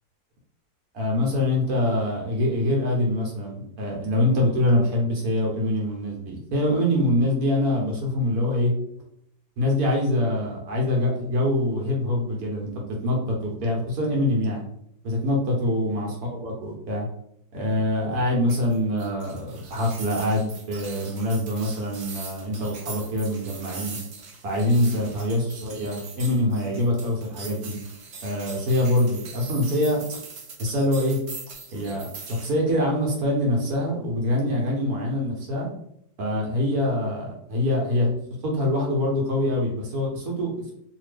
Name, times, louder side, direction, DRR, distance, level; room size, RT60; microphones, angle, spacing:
voice 1, 0.9-8.7 9.6-14.6 15.0-17.1 17.5-24.0 24.4-27.8 28.2-30.2 30.6-31.2 31.7-35.7 36.2-40.7, left 1 dB, 60° right, -1 dB, 1.3 m, -24 dB
sound 1, 18.5-32.5, right 4 dB, 80° right, 0.6 m, -41 dB
2.8 x 2.7 x 3.2 m, 0.73 s
omnidirectional pair, 2.1 m